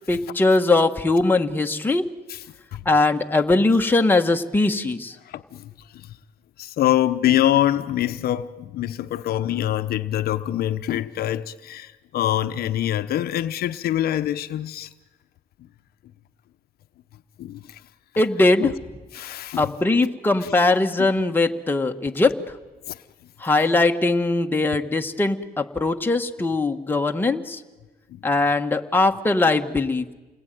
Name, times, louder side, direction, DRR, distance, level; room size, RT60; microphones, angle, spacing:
voice 1, 0.1-2.1 2.8-5.1 18.2-18.7 19.6-22.4 23.4-27.6 28.2-30.1, left 2 dB, 10° left, 1.6 m, -20 dB
voice 2, 6.6-14.9 17.4-17.8 18.6-18.7 19.1-19.7 20.4-20.5 22.9-23.0 23.6-23.7 28.1-28.2, left 12 dB, 65° left, 0.9 m, -24 dB
29.0 x 20.0 x 9.3 m
cardioid pair, 110°, 17 cm